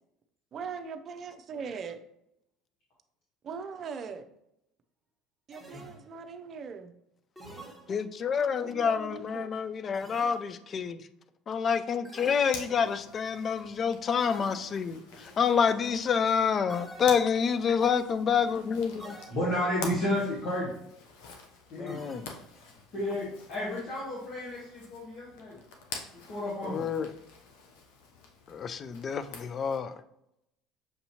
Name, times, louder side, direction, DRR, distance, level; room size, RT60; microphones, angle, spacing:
voice 1, 0.5-2.0 3.4-4.2 5.5-6.9 8.6-9.5, right 5 dB, 45° right, 7 dB, 0.6 m, -40 dB
sound 1, 5.5-6.4 7.4-8.4 9.9-10.8 12.0-13.1 14.2-15.0 16.7-17.6 19.0-19.8 21.9-22.7, right 1 dB, 5° left, 1.4 m, -49 dB
voice 2, 7.9-11.0 11.5-19.2 21.8-22.3 26.6-27.1 28.5-30.0, left 6 dB, 40° left, 12 dB, 0.4 m, -28 dB
Zipper (clothing), 12.4-29.8, left 4 dB, 80° left, 0.7 m, -47 dB
voice 3, 19.3-20.7 21.7-22.0 22.9-25.6 26.3-26.8, left 1 dB, 60° left, -7 dB, 1.4 m, -32 dB
6.5 x 2.7 x 2.9 m, 0.78 s
supercardioid pair, 80°, 0 cm